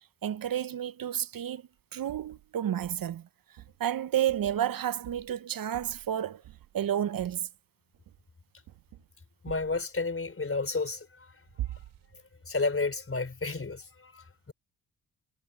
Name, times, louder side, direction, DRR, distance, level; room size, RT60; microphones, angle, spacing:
voice 1, 0.2-3.3 3.8-6.4 6.7-7.5, right 10 dB, 55° right, 1.0 m, -31 dB
sound 1, 2.1-2.5 2.8-3.1 3.6-3.8 4.3-4.7 5.0-5.4 5.7-6.1 6.4-6.8 7.2-7.4 7.9-8.3 8.7-9.1 9.4-9.8 11.6-12.1, right 14 dB, 80° right, 2.5 m, -44 dB
voice 2, 9.4-11.3 11.7-11.8 12.5-14.5, left 3 dB, 30° left, 3.9 m, -32 dB
hypercardioid pair, 45°, 41 cm